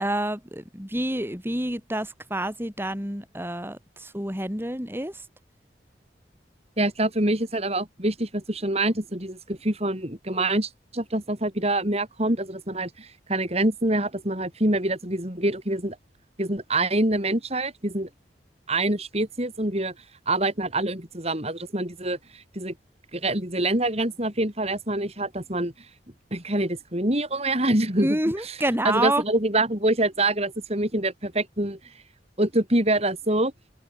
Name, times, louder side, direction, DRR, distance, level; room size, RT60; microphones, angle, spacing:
voice 1, 0.0-5.2 28.0-29.2, right 1 dB, 15° right, 6.4 m, -28 dB
voice 2, 6.8-16.0 16.4-18.1 18.7-19.9 20.3-22.7 23.1-25.7 26.3-28.2 28.4-28.5 28.8-31.9 32.4-33.5, right 1 dB, 35° right, 7.3 m, -25 dB
open air
head